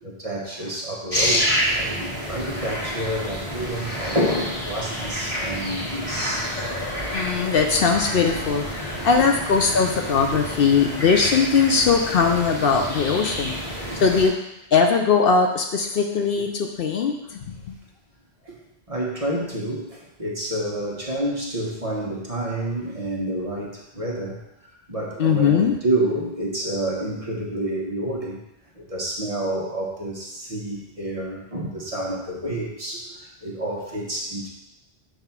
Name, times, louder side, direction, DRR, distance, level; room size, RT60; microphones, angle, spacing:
voice 1, 0.0-6.5 7.0-7.4 10.3-10.4 17.2-17.3 18.4-18.6 18.9-28.4 28.7-34.5, right 1 dB, 35° right, -3 dB, 1.2 m, -29 dB
sound 1, 1.1-14.3, equal, 35° left, 2.0 m, -28 dB
voice 2, 7.1-8.6 9.0-13.5 14.0-14.3 14.7-17.7 25.2-25.7, left 5 dB, 65° left, 4 dB, 0.8 m, -20 dB
5.8 x 3.4 x 5.8 m, 0.85 s
omnidirectional pair, 1.1 m